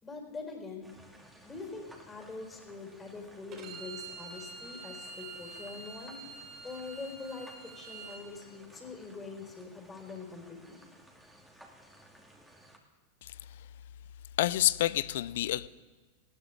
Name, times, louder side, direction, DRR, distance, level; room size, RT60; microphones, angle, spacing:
voice 1, 0.0-0.9 1.4-6.2 6.6-7.5 7.7-10.8, left 4 dB, 15° left, 1 dB, 4.5 m, -44 dB
sound 1, 0.8-12.8, right 1 dB, ahead, 2.4 m, -57 dB
Bowed string instrument, 3.5-8.2, right 4 dB, 35° right, 3.7 m, -46 dB
voice 2, 14.4-15.7, left 14 dB, 60° left, 19 dB, 0.5 m, -27 dB
19.5 x 16.0 x 3.6 m, 1.2 s
figure-of-eight pair, 90°, 0 cm